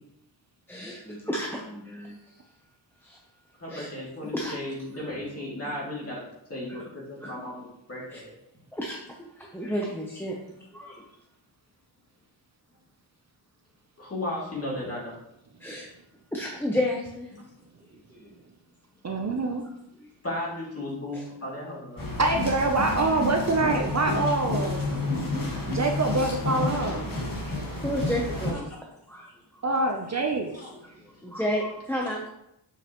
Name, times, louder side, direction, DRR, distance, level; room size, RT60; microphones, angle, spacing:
voice 1, 0.7-2.2 3.0-3.2 3.7-3.9 4.3-4.5 4.9-5.2 5.6-5.7 6.7-6.8 7.2-7.3 8.1-8.2 8.7-9.0 9.4-10.4 10.7-10.9 15.6-15.9 16.3-17.3 18.1-18.3 20.0-20.1 21.1-21.2 27.3-27.5 27.8-28.8 29.1-29.9 31.2-32.3, equal, 5° left, -2 dB, 0.7 m, -32 dB
voice 2, 3.6-6.2 6.5-8.3 14.0-15.1 17.3-17.4 20.2-22.2 28.5-28.6 30.6-30.7, left 1 dB, 30° left, -5 dB, 2.5 m, -35 dB
voice 3, 19.0-19.6 22.2-24.8 25.7-27.0 29.6-30.5, right 2 dB, 40° right, 3 dB, 0.6 m, -25 dB
sound 1, 22.0-28.5, left 2 dB, 45° left, 1.7 m, -30 dB
7.3 x 5.7 x 3.0 m, 0.82 s
wide cardioid pair, 145°, 44 cm